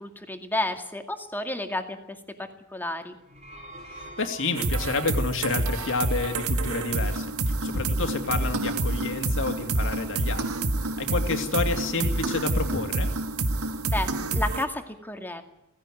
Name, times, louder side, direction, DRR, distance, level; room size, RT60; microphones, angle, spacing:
voice 1, 0.0-2.2 2.7-3.1 13.9-15.4, left 1 dB, 10° left, 6 dB, 2.1 m, -31 dB
sound 1, 3.1-5.1, right 1 dB, 30° right, 3.0 m, -45 dB
voice 2, 3.9-10.5 11.0-13.1, left 3 dB, 60° left, 6 dB, 2.7 m, -29 dB
sound 2, 4.5-14.6, right 2 dB, 90° right, 1.5 m, -28 dB
17.5 x 16.0 x 9.3 m, 0.88 s
head